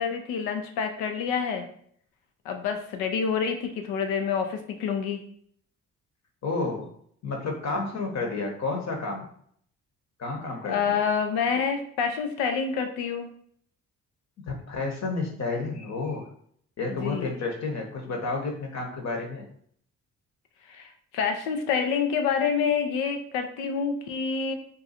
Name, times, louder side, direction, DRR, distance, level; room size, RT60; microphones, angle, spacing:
voice 1, 0.0-1.6 2.4-5.2 10.7-13.3 16.9-17.3 20.7-24.5, left 6 dB, 90° left, 6 dB, 0.5 m, -27 dB
voice 2, 6.4-6.9 7.2-9.3 10.2-11.0 14.4-16.3 16.8-19.5, left 3 dB, 55° left, 2 dB, 1.0 m, -31 dB
2.6 x 2.3 x 4.1 m, 0.63 s
supercardioid pair, 50°, 34 cm